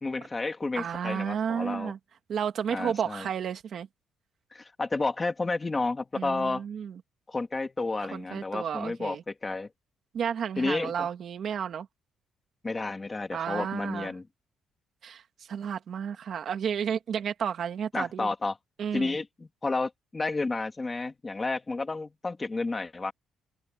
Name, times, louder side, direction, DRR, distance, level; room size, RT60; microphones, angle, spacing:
voice 1, 0.0-1.9 2.7-3.3 4.5-6.6 7.3-9.7 10.6-11.1 12.6-14.3 17.9-18.6 18.9-23.1, left 3 dB, 15° left, 2.2 m, -31 dB
voice 2, 0.8-2.0 2.3-3.9 6.2-6.9 8.1-9.2 10.1-11.9 13.3-14.1 15.0-15.2 15.5-18.3 18.8-19.2, right 8 dB, 45° right, 2.1 m, -32 dB
cardioid pair, 175°, 0 cm